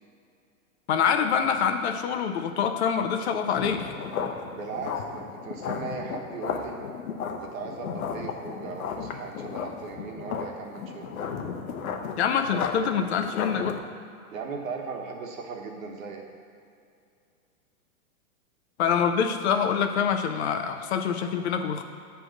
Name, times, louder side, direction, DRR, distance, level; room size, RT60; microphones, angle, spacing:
voice 1, 0.9-3.9 12.2-13.8 18.8-21.8, left 7 dB, 55° left, 6 dB, 0.7 m, -25 dB
sound 1, 3.5-13.8, left 6 dB, 85° left, 0.8 m, -34 dB
voice 2, 4.5-6.8 7.2-11.1 14.3-16.2, right 5 dB, 70° right, 1 dB, 1.3 m, -37 dB
7.5 x 3.4 x 6.4 m, 2.5 s
hypercardioid pair, 160°, 41 cm